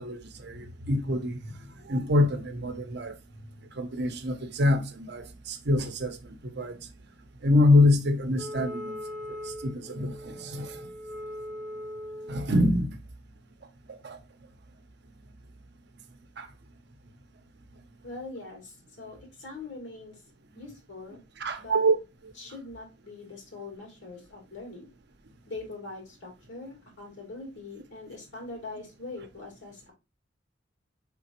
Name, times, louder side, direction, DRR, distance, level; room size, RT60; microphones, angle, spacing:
voice 1, 0.0-1.4 1.9-3.2 3.7-6.2 6.4-6.8 7.4-9.0 9.4-10.9 12.3-13.0 13.9-14.2 16.4-16.5 21.4-22.0, left 1 dB, 60° right, 0.7 m, -25 dB
Wind instrument woodwind instrument, 8.4-12.5, left 1 dB, 5° left, 0.7 m, -39 dB
voice 2, 18.0-20.2 20.5-21.2 21.6-21.8 22.4-24.9 25.5-29.9, left 3 dB, 80° left, 2.2 m, -42 dB
4.9 x 3.6 x 2.9 m
head